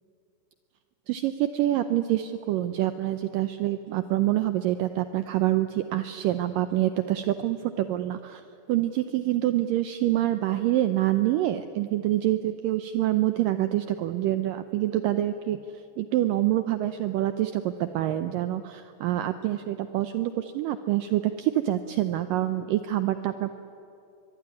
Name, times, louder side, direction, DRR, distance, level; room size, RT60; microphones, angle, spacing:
voice 1, 1.1-8.4 8.7-15.6 16.0-23.5, right 13 dB, 90° right, 10 dB, 1.9 m, -26 dB
24.0 x 23.0 x 9.7 m, 2.6 s
omnidirectional pair, 4.8 m